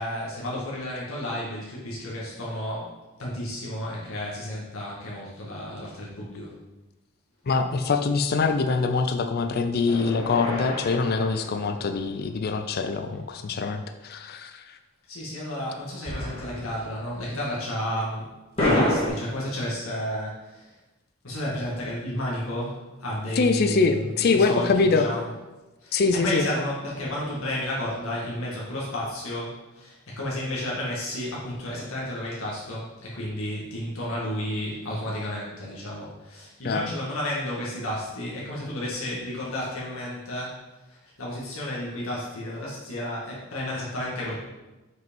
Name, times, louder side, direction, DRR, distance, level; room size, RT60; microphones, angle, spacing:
voice 1, 0.0-2.9 3.2-6.5 15.1-18.3 18.6-20.8 21.2-25.3 25.8-40.6 40.9-44.4, left 1 dB, 85° left, -6 dB, 1.8 m, -32 dB
voice 2, 7.5-14.8 23.4-25.1 25.9-26.4 36.6-36.9, left 4 dB, 50° left, 8 dB, 0.4 m, -24 dB
sound 1, 9.9-12.3 16.1-16.8 17.1-17.2 18.6-19.1, left 1 dB, 30° left, 2.3 m, -28 dB
6.3 x 5.1 x 5.2 m, 1.1 s
head